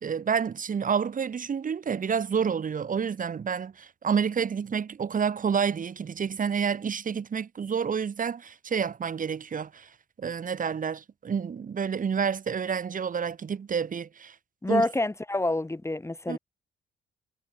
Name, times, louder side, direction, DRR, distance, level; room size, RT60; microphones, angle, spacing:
voice 1, 0.0-9.9 10.2-14.4 14.7-14.8 16.3-16.4, right 6 dB, 45° right, 2.2 m, -29 dB
voice 2, 14.6-16.4, left 2 dB, 15° left, 5.2 m, -27 dB
cardioid pair, 90°, 20 cm